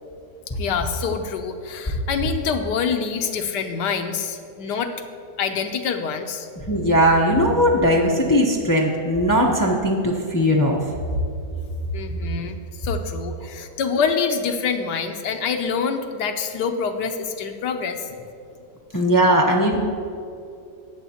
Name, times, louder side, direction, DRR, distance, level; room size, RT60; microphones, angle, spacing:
voice 1, 0.5-4.9 5.4-6.5 11.9-18.2 18.9-19.0, left 6 dB, 80° left, 6 dB, 1.3 m, -26 dB
voice 2, 6.7-10.8 18.9-19.8, equal, 20° left, -1 dB, 0.5 m, -18 dB
19.5 x 7.1 x 2.9 m, 2.5 s
omnidirectional pair, 1.8 m